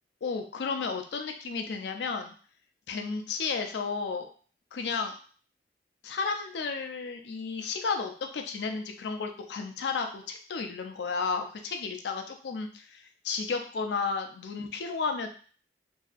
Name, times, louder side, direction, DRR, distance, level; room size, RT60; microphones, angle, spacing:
voice 1, 0.2-2.3 2.9-4.3 4.7-5.2 6.0-15.3, left 4 dB, 80° left, 5 dB, 0.4 m, -33 dB
2.7 x 2.4 x 2.4 m, 0.42 s
head